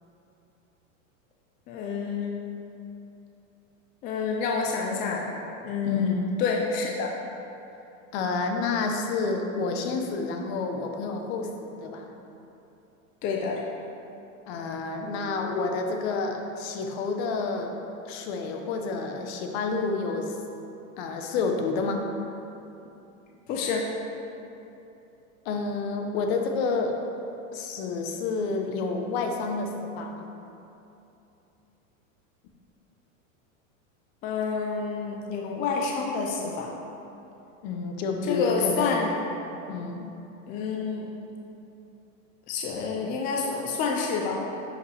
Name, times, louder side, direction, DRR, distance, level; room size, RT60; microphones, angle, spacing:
voice 1, 1.7-2.4 4.0-5.3 5.6-7.1 13.2-13.6 23.5-23.9 34.2-36.7 38.3-39.1 40.5-41.1 42.5-44.4, left 5 dB, 20° left, -1 dB, 0.4 m, -28 dB
voice 2, 5.8-6.5 8.1-12.1 14.5-17.7 18.1-20.3 21.0-22.1 25.4-27.0 27.5-30.3 37.6-39.0 39.7-40.1, left 4 dB, 50° left, 4 dB, 0.9 m, -29 dB
10.0 x 5.0 x 3.3 m, 2.9 s
supercardioid pair, 140°, 41 cm